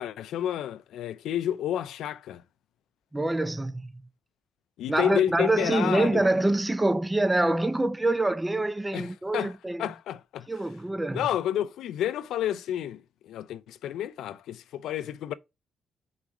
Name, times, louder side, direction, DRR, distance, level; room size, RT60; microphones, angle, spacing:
voice 1, 0.0-2.4 4.8-6.2 8.9-9.5 9.8-10.5 11.1-15.3, left 11 dB, 80° left, 0.5 m, -30 dB
voice 2, 3.1-3.9 4.9-9.9 10.5-11.2, right 2 dB, 10° right, 0.5 m, -25 dB
5.0 x 4.1 x 5.9 m
cardioid pair, 90°, 0 cm